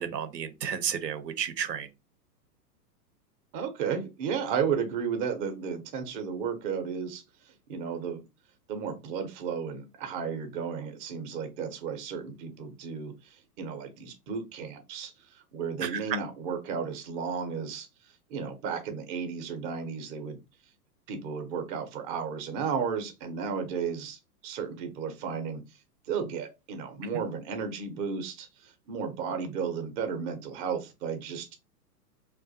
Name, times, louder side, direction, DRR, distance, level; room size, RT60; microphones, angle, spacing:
voice 1, 0.0-1.9 15.8-16.2, right 8 dB, 85° right, 0.6 m, -32 dB
voice 2, 3.5-8.2 8.7-17.9 18.3-20.4 21.1-25.6 26.1-31.5, right 6 dB, 30° right, 0.6 m, -34 dB
2.3 x 2.1 x 2.6 m
hypercardioid pair, 115°, 49 cm